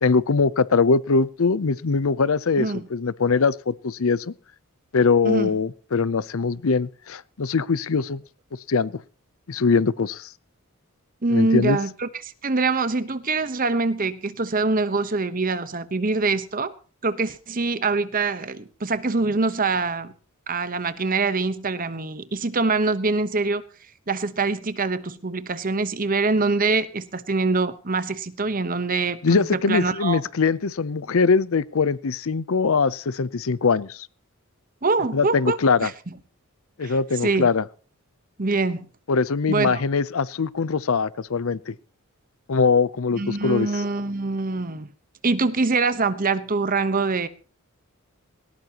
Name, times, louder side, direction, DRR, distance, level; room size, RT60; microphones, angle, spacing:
voice 1, 0.0-4.3 4.9-8.2 8.7-9.0 9.5-10.3 11.3-11.8 29.2-34.1 35.1-35.9 36.8-37.6 39.1-41.7 42.5-43.8, left 4 dB, 65° left, 0.6 m, -22 dB
voice 2, 11.2-16.7 17.0-20.1 20.5-23.6 24.1-30.2 34.8-35.9 36.8-36.9 37.2-37.5 38.4-38.9 39.5-39.8 43.2-44.9 45.2-47.3, right 3 dB, 40° right, 1.0 m, -24 dB
19.0 x 18.5 x 2.9 m
head